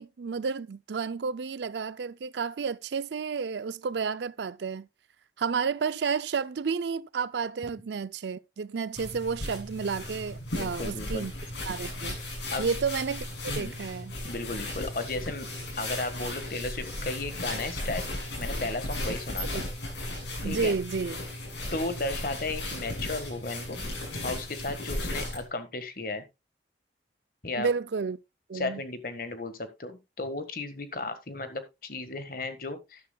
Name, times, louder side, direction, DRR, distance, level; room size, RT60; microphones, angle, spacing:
voice 1, 0.0-4.9 5.4-11.3 11.7-12.2 12.6-14.1 19.5-19.6 20.4-21.2 27.6-28.2 28.5-28.8, right 5 dB, 75° right, 0.4 m, -31 dB
sound 1, 9.0-25.4, left 1 dB, 90° left, 7.1 m, -35 dB
voice 2, 10.6-11.2 12.5-12.7 13.5-13.8 14.2-15.5 15.8-18.1 18.4-19.6 20.4-20.7 21.7-23.9 24.2-26.2 27.4-27.7 28.5-33.0, left 2 dB, 50° left, 1.6 m, -34 dB
12.0 x 11.0 x 2.3 m
head